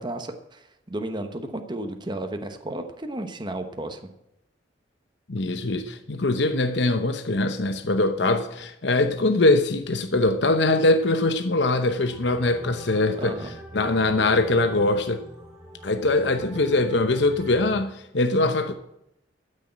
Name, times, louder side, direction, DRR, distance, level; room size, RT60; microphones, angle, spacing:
voice 1, 0.0-4.0 13.2-13.5, right 1 dB, 25° right, 1.0 m, -33 dB
voice 2, 5.3-15.2 15.8-18.7, left 2 dB, 65° left, 0.9 m, -22 dB
sound 1, 12.0-17.7, equal, 5° right, 3.6 m, -43 dB
12.5 x 6.6 x 8.7 m
head